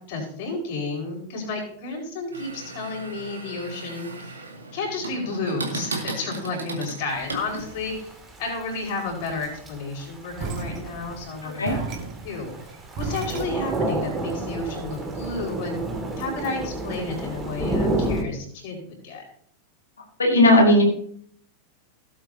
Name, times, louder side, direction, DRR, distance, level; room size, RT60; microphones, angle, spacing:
voice 1, 0.1-4.4 4.7-8.1 8.4-11.9 12.2-12.5 13.0-15.8 16.2-19.2, left 3 dB, 50° left, 0 dB, 4.8 m, -31 dB
sound 1, 2.3-8.0, right 3 dB, 75° right, 2.1 m, -36 dB
Thunder / Rain, 7.1-18.2, right 2 dB, 15° right, 2.1 m, -31 dB
sound 2, 10.4-13.9, right 4 dB, 35° right, 1.9 m, -34 dB
voice 2, 11.4-11.7 20.2-20.8, left 1 dB, 75° left, 1 dB, 2.2 m, -16 dB
17.5 x 7.9 x 2.8 m, 0.63 s
figure-of-eight pair, 90°, 0 cm